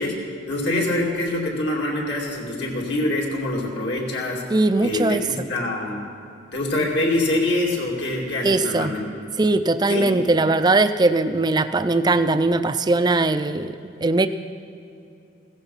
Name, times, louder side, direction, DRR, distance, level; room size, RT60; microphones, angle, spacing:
voice 1, 0.0-4.4 4.8-6.0 6.5-9.0 9.9-10.1, left 1 dB, 70° left, -2 dB, 2.8 m, -25 dB
voice 2, 4.5-5.2 8.4-9.0 9.4-13.7 14.0-14.3, right 2 dB, 20° right, 11 dB, 0.4 m, -20 dB
16.0 x 14.5 x 5.7 m, 2.7 s
head